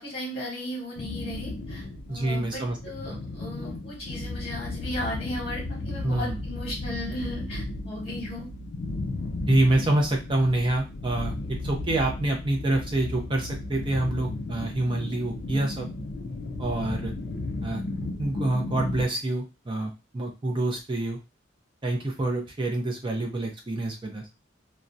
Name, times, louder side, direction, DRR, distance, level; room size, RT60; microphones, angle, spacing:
voice 1, 0.0-8.5, left 1 dB, 30° left, -3 dB, 0.9 m, -36 dB
sound 1, 1.0-19.0, left 2 dB, 60° left, 0.4 m, -34 dB
voice 2, 2.1-2.8 3.1-3.2 6.0-6.4 9.5-15.9 16.6-17.1 17.6-17.8 18.2-21.2 21.8-24.2, right 2 dB, 25° right, 1 dB, 0.5 m, -27 dB
2.3 x 2.1 x 2.6 m, 0.27 s
head